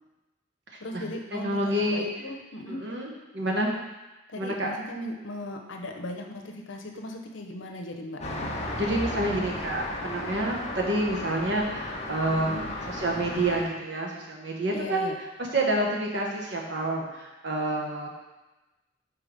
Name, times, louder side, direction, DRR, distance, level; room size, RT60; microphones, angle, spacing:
voice 1, 0.8-2.9 4.3-8.2 12.3-12.7 14.7-15.2, left 1 dB, 85° left, 3 dB, 0.8 m, -37 dB
voice 2, 1.3-2.1 2.7-3.7 4.4-4.7 8.8-12.6 12.9-15.1 15.5-18.1, right 1 dB, 65° right, -1 dB, 1.2 m, -28 dB
Traffic noise roadway noise, 8.2-13.6, left 1 dB, 35° left, 0.8 m, -34 dB
4.9 x 4.7 x 5.2 m, 1.1 s
head